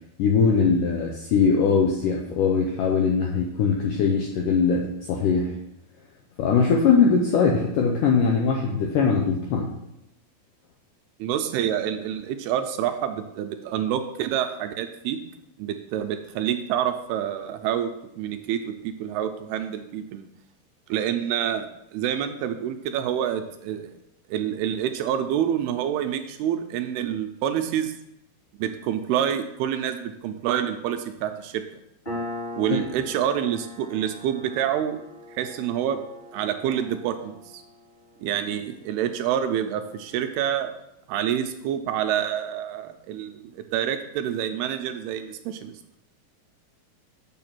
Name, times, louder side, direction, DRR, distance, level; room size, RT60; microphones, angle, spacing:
voice 1, 0.2-5.6 6.4-9.7 32.7-32.8, left 5 dB, 80° left, 1 dB, 1.9 m, -21 dB
voice 2, 11.2-15.2 15.6-20.3 20.9-23.9 24.3-27.9 28.6-31.6 32.6-35.0 35.3-36.0 36.3-37.4 38.2-40.7 41.1-45.7, right 10 dB, 80° right, 7 dB, 2.4 m, -27 dB
Piano, 32.1-39.2, left 1 dB, 10° left, 3.7 m, -40 dB
7.0 x 6.4 x 6.0 m, 0.83 s
omnidirectional pair, 4.8 m